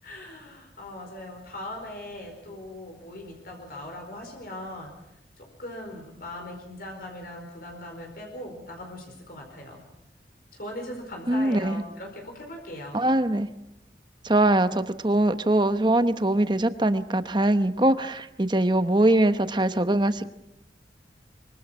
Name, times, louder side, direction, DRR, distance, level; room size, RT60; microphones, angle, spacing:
voice 1, 0.0-4.9 5.4-9.8 10.5-13.0, left 1 dB, 55° left, 2 dB, 4.6 m, -40 dB
voice 2, 11.3-11.8 12.9-13.5 14.2-20.3, right 1 dB, 25° right, 11 dB, 1.0 m, -22 dB
24.5 x 24.0 x 6.3 m, 0.86 s
head